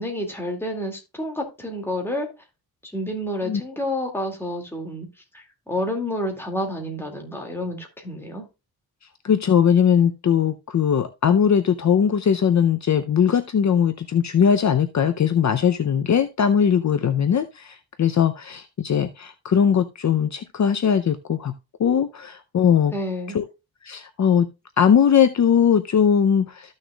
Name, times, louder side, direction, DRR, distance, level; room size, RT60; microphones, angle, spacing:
voice 1, 0.0-2.3 2.8-5.1 5.3-8.5 22.9-23.4, left 1 dB, 5° left, 1 dB, 2.2 m, -29 dB
voice 2, 9.2-21.5 21.8-22.9 23.3-23.4 23.8-24.5 24.8-26.7, left 7 dB, 50° left, 8 dB, 0.6 m, -20 dB
14.0 x 6.4 x 2.3 m, 0.26 s
wide cardioid pair, 170°, 37 cm